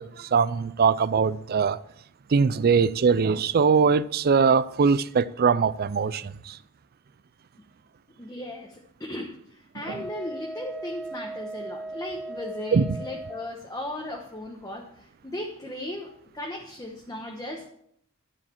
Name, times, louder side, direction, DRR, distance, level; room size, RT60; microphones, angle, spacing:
voice 1, 0.0-1.8 2.3-6.6 9.9-10.0 12.7-13.0, right 5 dB, 45° right, 0.4 m, -22 dB
voice 2, 8.2-17.7, left 1 dB, 15° left, 1.1 m, -37 dB
Wind instrument woodwind instrument, 9.8-13.5, right 2 dB, 10° right, 1.5 m, -38 dB
12.5 x 4.9 x 7.1 m
head